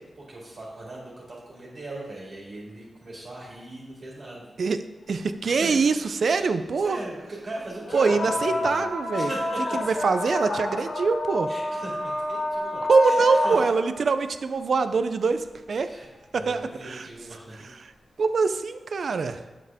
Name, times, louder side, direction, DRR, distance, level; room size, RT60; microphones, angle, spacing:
voice 1, 0.2-4.5 5.4-5.8 6.2-6.5 6.8-8.9 9.1-9.9 11.5-13.6 15.8-16.1 16.3-17.7 19.0-19.4, right 2 dB, 45° right, -4 dB, 2.1 m, -39 dB
voice 2, 5.1-7.0 7.9-9.3 9.7-11.5 12.9-15.9 16.3-17.1 17.8-17.9 18.2-19.4, right 4 dB, 65° right, 10 dB, 0.4 m, -24 dB
sound 1, 7.8-14.0 15.5-15.6 16.4-16.5, left 1 dB, 75° left, 1.2 m, -28 dB
8.3 x 7.1 x 3.5 m, 1.1 s
wide cardioid pair, 110°, 0 cm